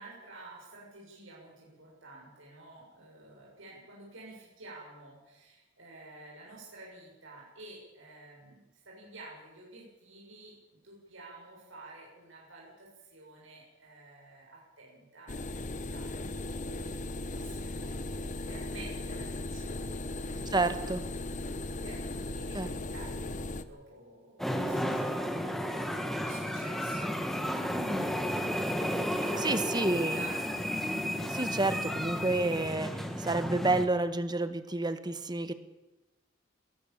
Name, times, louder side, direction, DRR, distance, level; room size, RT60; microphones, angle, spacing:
voice 1, 0.0-10.5 10.8-20.6 21.3-21.5 21.8-28.0 29.2-30.4, right 2 dB, 90° right, -4 dB, 7.3 m, -51 dB
sound 1, 15.3-23.6, left 2 dB, 40° left, 1.1 m, -37 dB
voice 2, 20.5-21.0 22.5-22.7 27.7-28.1 29.1-30.2 31.3-35.5, right 2 dB, 20° right, 11 dB, 1.4 m, -30 dB
sound 2, 24.4-33.9, equal, ahead, 2.1 m, -33 dB
21.0 x 17.0 x 7.4 m, 1.0 s
head